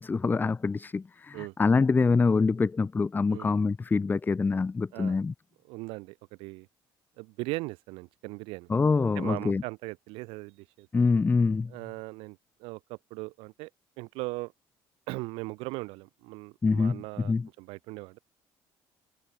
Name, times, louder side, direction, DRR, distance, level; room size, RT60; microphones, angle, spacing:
voice 1, 0.0-5.3 8.7-9.6 10.9-11.7 16.6-17.0 17.3-17.5, left 4 dB, 20° left, 0.4 m, -25 dB
voice 2, 5.7-6.7 7.2-8.7 9.1-11.1 11.7-13.7 14.0-14.5 15.1-18.2, right 24 dB, 85° right, 1.6 m, -39 dB
supercardioid pair, 80°, 9 cm